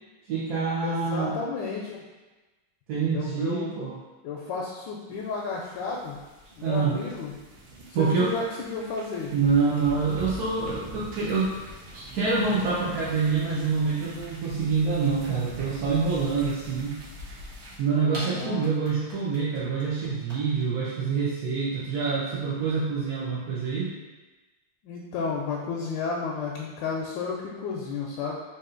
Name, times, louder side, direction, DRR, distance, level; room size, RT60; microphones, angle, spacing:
voice 1, 0.3-1.4 2.9-4.0 6.6-7.0 7.9-8.3 9.3-11.6 11.9-17.0 17.8-23.9, right 5 dB, 65° right, -8 dB, 1.0 m, -26 dB
voice 2, 0.8-2.0 3.1-3.7 4.2-6.2 6.5-7.3 8.0-9.3 18.0-18.7 24.8-28.4, left 4 dB, 75° left, -2 dB, 1.1 m, -32 dB
sound 1, 5.2-17.8, equal, 90° right, 1.7 m, -44 dB
sound 2, 18.1-20.6, right 1 dB, 50° right, 1.6 m, -40 dB
4.0 x 2.7 x 3.7 m, 1.2 s
omnidirectional pair, 2.3 m